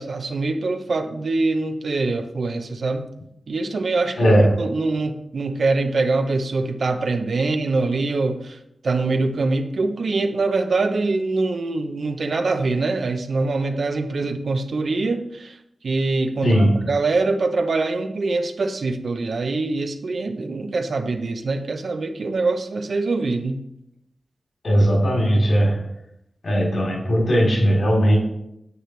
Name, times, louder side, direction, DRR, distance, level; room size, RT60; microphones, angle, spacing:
voice 1, 0.0-3.1 3.5-8.6 8.8-15.6 15.8-23.6, right 3 dB, 75° right, 6 dB, 0.8 m, -24 dB
voice 2, 4.2-4.5 16.4-16.7 24.6-25.8 26.4-28.2, equal, 75° left, -2 dB, 3.6 m, -18 dB
9.7 x 7.8 x 3.3 m, 0.81 s
wide cardioid pair, 75°, 0 cm